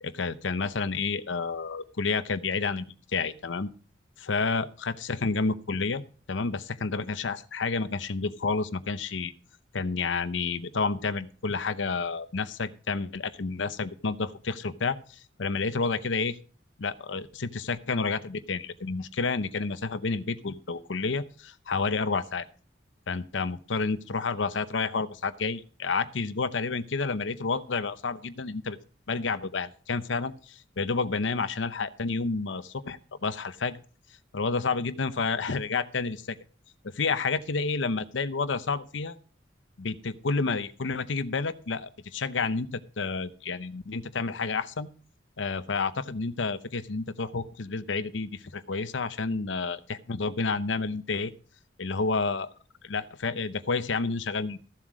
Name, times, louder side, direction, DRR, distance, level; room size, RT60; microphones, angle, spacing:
voice 1, 0.0-2.9 3.1-3.7 4.2-6.0 6.3-9.3 9.7-16.4 16.8-22.5 23.1-28.8 29.1-33.8 34.3-36.4 36.8-39.2 39.8-44.9 45.4-51.3 51.8-52.5 52.8-54.6, left 4 dB, 85° left, 12 dB, 0.7 m, -30 dB
14.5 x 7.5 x 4.9 m, 0.40 s
head